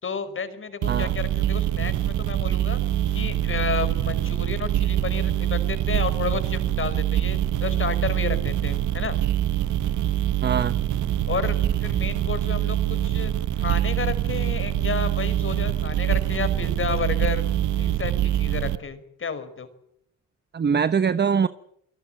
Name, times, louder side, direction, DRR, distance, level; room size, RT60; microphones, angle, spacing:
voice 1, 0.0-2.8 3.1-9.2 11.3-17.4 17.8-19.7, left 5 dB, 40° left, 5.1 m, -31 dB
sound 1, 0.8-18.8, right 11 dB, 75° right, 1.5 m, -24 dB
voice 2, 10.4-10.7 20.5-21.5, right 6 dB, 35° right, 1.1 m, -22 dB
28.5 x 18.5 x 9.2 m
cardioid pair, 90°, 30 cm